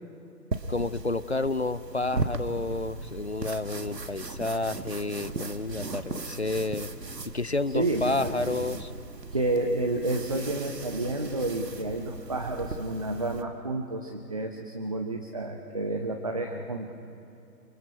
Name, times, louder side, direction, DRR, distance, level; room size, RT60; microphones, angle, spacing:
sound 1, 0.5-13.4, right 3 dB, 75° right, 1.8 m, -37 dB
voice 1, 0.7-6.9 7.3-8.9, left 2 dB, 45° left, 16 dB, 0.5 m, -30 dB
voice 2, 7.7-8.3 9.3-16.9, right 2 dB, 20° right, 3 dB, 0.7 m, -30 dB
29.5 x 23.0 x 5.7 m, 2.6 s
figure-of-eight pair, 145°, 49 cm